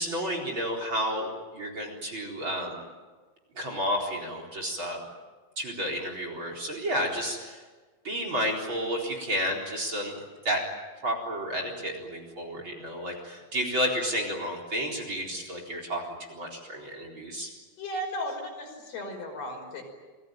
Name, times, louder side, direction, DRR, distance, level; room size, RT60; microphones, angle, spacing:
voice 1, 0.0-2.8 3.5-5.0 5.6-7.6 8.0-10.2 10.4-10.6 11.0-16.0 16.3-17.5, equal, 30° right, 2 dB, 4.7 m, -31 dB
voice 2, 17.8-19.8, equal, 75° left, 3 dB, 7.3 m, -35 dB
28.5 x 20.5 x 9.1 m, 1.3 s
omnidirectional pair, 4.6 m